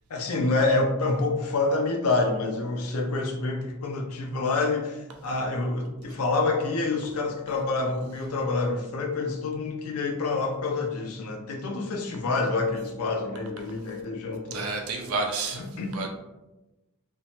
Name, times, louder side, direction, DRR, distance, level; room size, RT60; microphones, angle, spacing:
voice 1, 0.1-14.6 15.5-16.1, left 3 dB, 85° left, 2 dB, 0.5 m, -27 dB
voice 2, 14.5-15.6 15.9-16.1, right 3 dB, 75° right, 2 dB, 0.5 m, -29 dB
3.1 x 2.0 x 2.8 m, 1.0 s
head